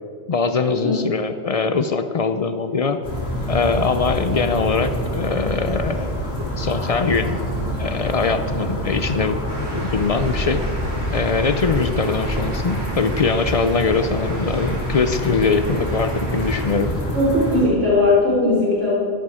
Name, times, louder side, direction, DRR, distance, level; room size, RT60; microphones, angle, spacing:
voice 1, 0.3-3.0 3.5-7.4 7.8-9.4 9.7-10.6 11.1-16.9, left 4 dB, 60° left, 9 dB, 0.4 m, -22 dB
sound 1, 3.0-17.6, equal, 85° left, 3.7 m, -26 dB
sound 2, 9.5-16.7, equal, 20° right, 2.6 m, -37 dB
voice 2, 17.1-19.0, left 2 dB, 75° right, -6 dB, 3.7 m, -18 dB
12.5 x 11.5 x 4.3 m, 2.3 s
omnidirectional pair, 1.3 m